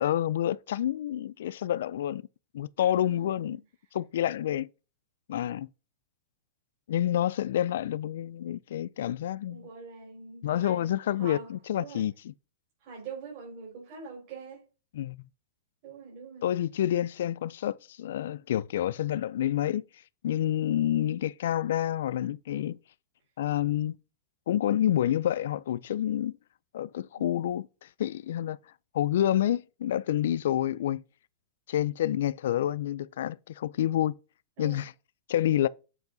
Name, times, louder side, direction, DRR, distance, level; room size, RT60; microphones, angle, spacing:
voice 1, 0.0-2.2 2.5-3.6 3.9-4.7 5.3-5.7 6.9-9.7 10.4-12.3 14.9-15.2 16.4-19.8 20.2-22.8 23.4-24.0 24.5-26.3 26.7-28.6 28.9-31.0 31.7-34.2 34.6-34.9 35.3-35.7, left 11 dB, 75° left, 0.3 m, -28 dB
voice 2, 2.8-3.6 9.5-12.1 12.8-14.7 15.8-16.5 27.1-27.3 34.6-34.9, right 5 dB, 50° right, 4.2 m, -44 dB
7.6 x 4.5 x 3.9 m
hypercardioid pair, 130°, 0 cm